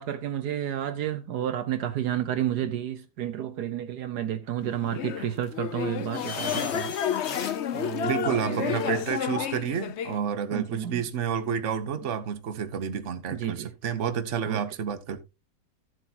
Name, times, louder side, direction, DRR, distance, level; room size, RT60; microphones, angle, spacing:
voice 1, 0.0-7.0 7.7-9.0 10.5-11.0 13.3-13.7 14.5-14.7, right 11 dB, 70° right, 1.4 m, -31 dB
sound 1, 4.8-10.2, left 9 dB, 65° left, 0.7 m, -31 dB
sound 2, 6.1-9.2, left 5 dB, 90° left, 2.4 m, -39 dB
voice 2, 8.0-15.2, right 7 dB, 50° right, 1.3 m, -30 dB
14.0 x 7.7 x 2.9 m
omnidirectional pair, 1.8 m